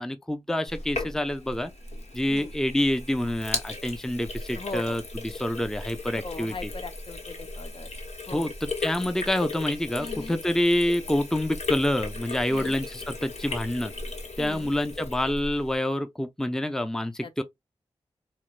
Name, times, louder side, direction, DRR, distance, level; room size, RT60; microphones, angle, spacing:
voice 1, 0.0-1.7 2.1-6.7 8.3-8.5 8.8-13.9 14.4-17.4, left 1 dB, 5° left, 0.5 m, -27 dB
Sink (filling or washing), 0.7-15.8, left 3 dB, 75° left, 1.0 m, -36 dB
voice 2, 4.6-5.0 6.2-7.9 8.3-8.5 10.0-10.4 12.5-12.8 14.4-14.7 17.2-17.3, left 3 dB, 50° left, 0.6 m, -39 dB
4.3 x 2.2 x 2.4 m
cardioid pair, 50°, 11 cm